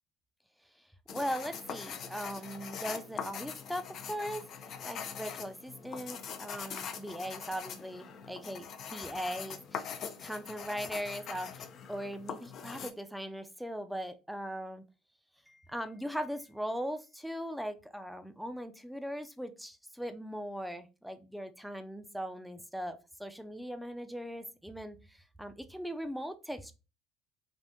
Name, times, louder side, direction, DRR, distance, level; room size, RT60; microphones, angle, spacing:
sound 1, 1.1-12.9, left 7 dB, 50° left, 0.4 m, -43 dB
voice 1, 1.1-4.5 4.8-9.9 10.2-14.8 15.5-26.7, equal, ahead, 0.5 m, -39 dB
3.5 x 2.4 x 2.7 m
hypercardioid pair, 75°, 0 cm